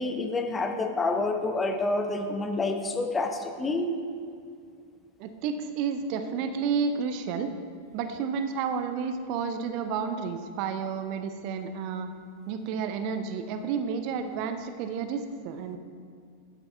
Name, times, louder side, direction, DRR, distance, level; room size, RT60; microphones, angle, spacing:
voice 1, 0.0-3.9, left 3 dB, 15° left, 5 dB, 0.8 m, -28 dB
voice 2, 5.2-7.5 7.9-12.1 12.5-15.8, right 6 dB, 45° right, 8 dB, 0.6 m, -31 dB
11.0 x 9.0 x 3.3 m, 2.3 s
figure-of-eight pair, 90°, 0 cm